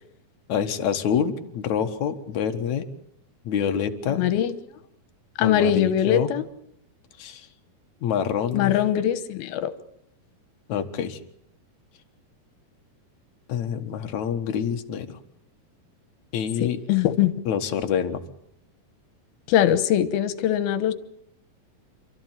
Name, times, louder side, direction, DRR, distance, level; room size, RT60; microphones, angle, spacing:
voice 1, 0.5-2.9 3.4-4.2 5.4-6.3 7.2-7.5 8.0-8.8 10.7-11.2 13.5-15.2 16.3-16.8 17.5-18.2, left 8 dB, 60° left, 6 dB, 2.6 m, -26 dB
voice 2, 4.2-4.5 5.4-6.4 8.5-9.7 16.6-17.3 19.5-20.9, left 10 dB, 85° left, 13 dB, 3.1 m, -22 dB
28.0 x 13.5 x 9.0 m, 0.74 s
omnidirectional pair, 4.2 m